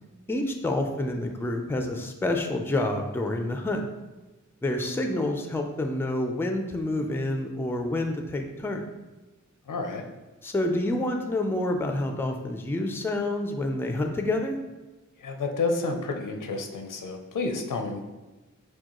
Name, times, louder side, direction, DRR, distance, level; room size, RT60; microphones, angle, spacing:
voice 1, 0.3-3.8 4.6-8.9 10.4-14.6, left 1 dB, 10° left, 4 dB, 0.4 m, -28 dB
voice 2, 9.7-10.0 15.2-18.0, left 3 dB, 90° left, 4 dB, 0.5 m, -30 dB
6.1 x 2.2 x 2.9 m, 1.2 s
wide cardioid pair, 85°, 31 cm